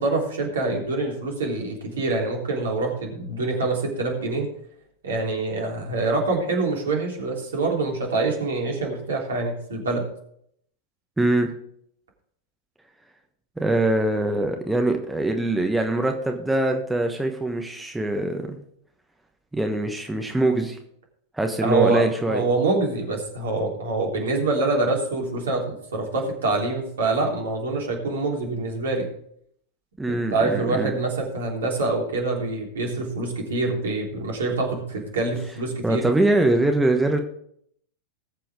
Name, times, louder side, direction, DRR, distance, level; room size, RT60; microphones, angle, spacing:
voice 1, 0.0-4.5 5.0-10.0 21.6-29.1 30.1-36.0, right 3 dB, 65° right, 0 dB, 3.4 m, -25 dB
voice 2, 11.2-11.5 13.6-18.6 19.5-20.8 21.3-22.4 30.0-30.9 35.8-37.2, right 2 dB, 5° right, 4 dB, 1.2 m, -23 dB
19.5 x 7.6 x 3.6 m, 0.67 s
figure-of-eight pair, 90°, 0 cm